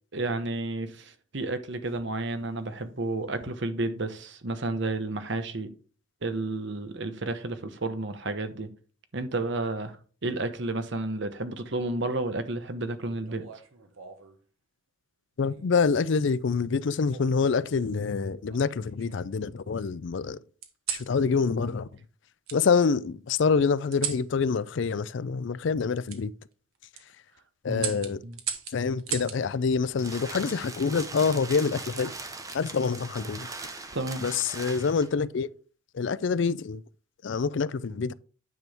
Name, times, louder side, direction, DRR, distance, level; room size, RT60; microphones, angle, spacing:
voice 1, 0.1-5.7 6.2-8.7 9.1-10.0 10.2-13.4 27.7-28.0 28.2-28.4 33.9-34.2, right 2 dB, 55° right, 1.0 m, -31 dB
sound 1, 13.3-14.4 15.4-15.8 17.1-17.9 18.5-19.4 20.6-21.1 22.5-22.6 23.9-24.3 26.1-26.2 26.7-27.0 27.8-29.4 30.9-31.3, right 8 dB, 85° right, 1.3 m, -37 dB
voice 2, 15.4-20.4 20.9-21.9 22.5-26.3 27.6-28.2 28.7-32.1 32.5-33.5 34.2-35.5 35.9-36.8 37.2-38.1, left 5 dB, 60° left, 0.4 m, -26 dB
sound 2, 29.5-35.2, right 3 dB, 15° right, 0.8 m, -40 dB
9.4 x 6.0 x 3.5 m
head